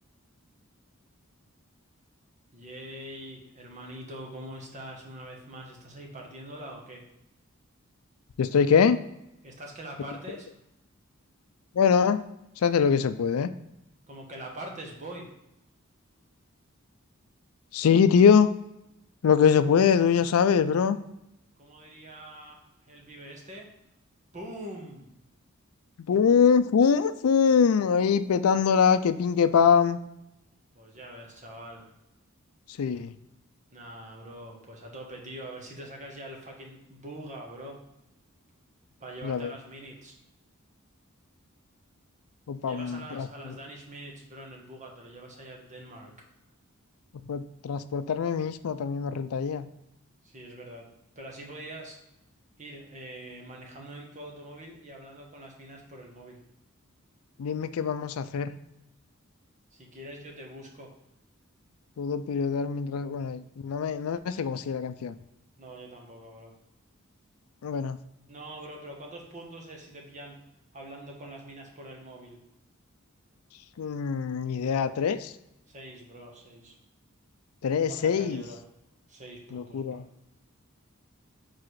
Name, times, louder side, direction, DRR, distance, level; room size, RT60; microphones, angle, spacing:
voice 1, 2.5-7.0 9.4-10.5 14.1-15.3 21.6-23.7 24.3-25.1 30.7-31.9 33.7-37.8 39.0-40.2 42.7-46.1 50.2-50.9 51.1-52.0 52.6-56.4 59.7-60.9 65.6-66.5 68.3-70.4 70.7-72.4 75.7-76.8 77.9-78.6 79.1-80.0, right 1 dB, 35° right, 1 dB, 1.2 m, -44 dB
voice 2, 8.4-9.0 11.7-12.2 12.6-13.5 17.7-18.5 19.2-21.0 26.0-30.0 32.7-33.1 39.2-39.5 42.5-43.6 47.3-49.7 57.4-58.5 62.0-65.2 67.6-68.0 73.8-75.3 77.6-78.4 79.5-80.0, left 6 dB, 90° left, 12 dB, 0.4 m, -23 dB
4.8 x 4.2 x 4.7 m, 0.85 s
head